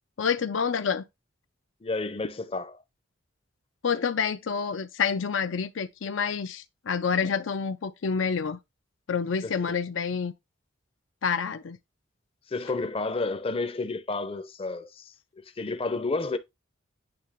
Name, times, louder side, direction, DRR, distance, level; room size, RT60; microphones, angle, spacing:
voice 1, 0.2-1.0 3.8-8.6 9.1-10.3 11.2-11.8, left 6 dB, 80° left, 0.5 m, -28 dB
voice 2, 1.8-2.8 9.4-9.6 12.5-16.4, left 3 dB, 30° left, 0.6 m, -31 dB
8.7 x 3.1 x 3.5 m
head